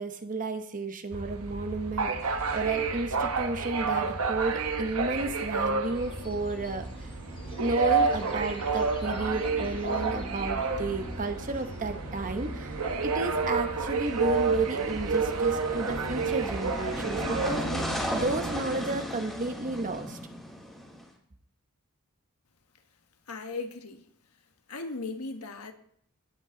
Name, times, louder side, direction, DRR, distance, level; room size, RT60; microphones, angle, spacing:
voice 1, 0.0-7.1 7.6-17.9 18.1-20.2, right 2 dB, 35° right, 1.0 m, -32 dB
sound 1, 1.1-18.6, right 4 dB, 70° right, 1.1 m, -30 dB
sound 2, 5.9-14.0, left 1 dB, 25° left, 1.1 m, -46 dB
sound 3, 14.0-21.0, equal, ahead, 3.0 m, -36 dB
voice 2, 23.3-24.0 24.7-25.7, left 3 dB, 85° left, 1.3 m, -37 dB
18.0 x 6.0 x 3.9 m
head